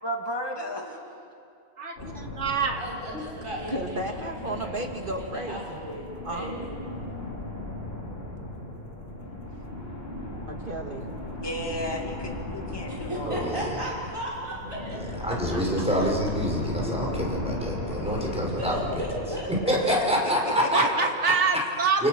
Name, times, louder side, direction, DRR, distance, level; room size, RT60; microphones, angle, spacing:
voice 1, 0.0-1.0 11.4-13.5 19.9-20.0 20.4-21.1, equal, 15° left, 1 dB, 2.4 m, -33 dB
voice 2, 0.6-0.9 2.8-6.7 12.8-15.0 15.5-15.6 18.2-19.5, equal, 20° right, -4 dB, 5.6 m, -36 dB
voice 3, 1.8-2.8 3.1-3.2 14.8-15.0 20.7-22.1, right 5 dB, 55° right, 4 dB, 2.2 m, -26 dB
sound 1, 2.0-20.4, left 1 dB, 45° left, 4.0 m, -36 dB
voice 4, 3.7-5.8 6.2-7.3 8.4-8.6 10.5-11.2 20.8-21.6, right 1 dB, 40° right, 3 dB, 1.8 m, -35 dB
voice 5, 13.3-13.8 15.2-18.8 19.7-20.8 22.0-22.1, equal, 5° right, -2 dB, 5.2 m, -26 dB
29.0 x 25.5 x 6.5 m, 2.4 s
omnidirectional pair, 1.4 m